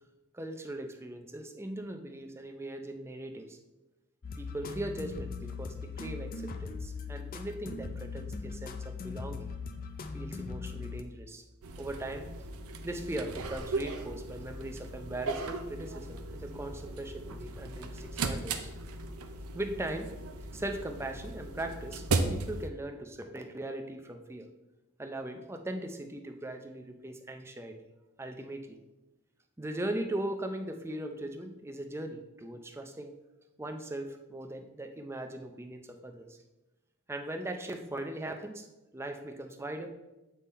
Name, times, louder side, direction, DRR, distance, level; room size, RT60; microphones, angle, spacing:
voice 1, 0.3-3.6 4.4-9.5 10.1-11.4 11.8-12.3 12.8-18.7 19.5-20.1 20.5-24.5 25.0-27.8 28.2-28.8 29.6-33.1 33.6-36.4 37.1-38.7 38.9-39.9, right 1 dB, 10° right, 5 dB, 0.5 m, -39 dB
sound 1, 4.2-11.0, left 4 dB, 40° left, 0.5 m, -39 dB
sound 2, 11.6-22.7, right 3 dB, 85° right, 0.6 m, -37 dB
8.3 x 3.7 x 4.1 m, 1.0 s
head